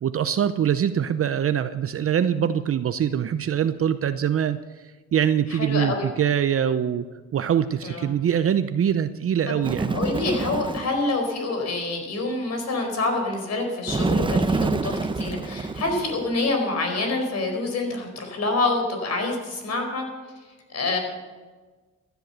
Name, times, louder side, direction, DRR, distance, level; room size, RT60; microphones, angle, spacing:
voice 1, 0.0-4.6 5.1-7.0 7.3-10.0, right 9 dB, 50° right, 11 dB, 0.7 m, -23 dB
voice 2, 5.5-6.1 7.8-8.1 9.5-9.6 9.9-20.0 20.7-21.0, left 2 dB, 60° left, 4 dB, 4.7 m, -26 dB
Bird, 9.6-11.0 13.9-16.4, right 3 dB, 15° right, 0.8 m, -26 dB
15.0 x 10.5 x 6.8 m, 1.3 s
cardioid pair, 90°, 30 cm